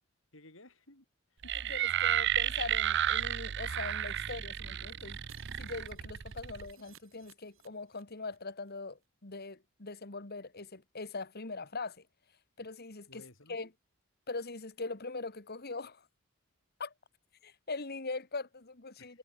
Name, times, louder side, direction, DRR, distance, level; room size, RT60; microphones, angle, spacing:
voice 1, 0.3-1.1 1.3-1.7 2.1-2.2 6.5-6.8 13.1-13.6 19.0-19.2, left 1 dB, 65° left, 7.8 m, -57 dB
sound 1, 1.4-6.7, right 11 dB, 60° right, 0.7 m, -32 dB
voice 2, 1.7-5.2 5.6-12.0 12.6-13.7 14.3-16.1 16.8-16.9 17.4-19.2, left 3 dB, 50° left, 2.1 m, -41 dB
Shatter, 5.3-8.4 8.6-8.7 9.0-9.1, right 8 dB, 75° right, 7.6 m, -62 dB
head